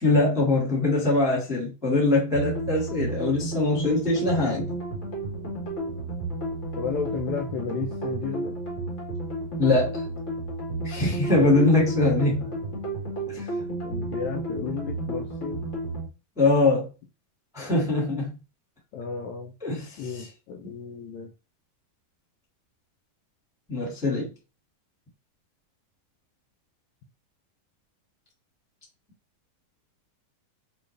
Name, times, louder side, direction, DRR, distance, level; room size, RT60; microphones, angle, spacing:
voice 1, 0.0-4.7 9.6-10.0 10.8-12.5 16.4-16.9 17.5-18.4 19.6-20.3 23.7-24.3, left 2 dB, ahead, 1.1 m, -22 dB
sound 1, 2.3-16.1, right 2 dB, 50° left, 0.9 m, -32 dB
voice 2, 6.8-8.6 11.3-11.6 12.3-12.5 13.8-15.7 18.9-19.5 20.0-21.3, left 6 dB, 75° left, 1.7 m, -33 dB
6.2 x 2.4 x 3.3 m
omnidirectional pair, 3.8 m